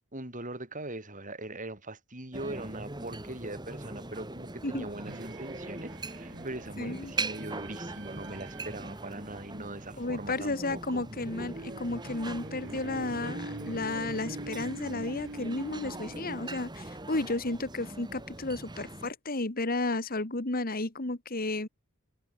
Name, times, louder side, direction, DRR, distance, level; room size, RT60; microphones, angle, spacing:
voice 1, 0.1-11.1, right 2 dB, 35° right, 6.9 m, -41 dB
sound 1, 2.3-19.1, right 2 dB, 20° right, 2.4 m, -41 dB
sound 2, 5.1-17.1, right 2 dB, 60° right, 1.6 m, -46 dB
voice 2, 6.8-7.1 10.0-21.7, left 2 dB, 40° left, 1.9 m, -33 dB
head